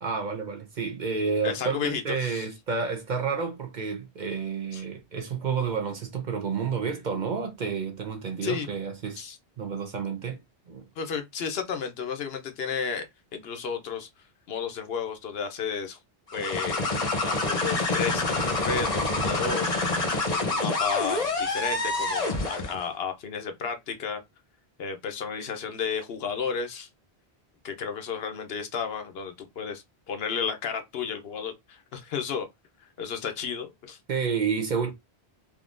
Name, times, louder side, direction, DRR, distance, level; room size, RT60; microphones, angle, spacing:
voice 1, 0.0-9.3 9.6-10.4 10.7-10.8 34.1-34.9, right 5 dB, 50° right, 0.7 m, -30 dB
voice 2, 1.4-2.5 4.7-4.8 8.4-8.7 9.2-9.4 11.0-13.1 13.3-14.1 14.5-16.0 16.3-16.8 17.1-19.7 20.3-24.2 24.8-26.9 27.6-32.5 33.0-34.0, left 6 dB, 70° left, 0.9 m, -32 dB
sound 1, 16.3-22.8, left 2 dB, 40° left, 0.9 m, -27 dB
3.6 x 2.7 x 2.4 m
omnidirectional pair, 1.1 m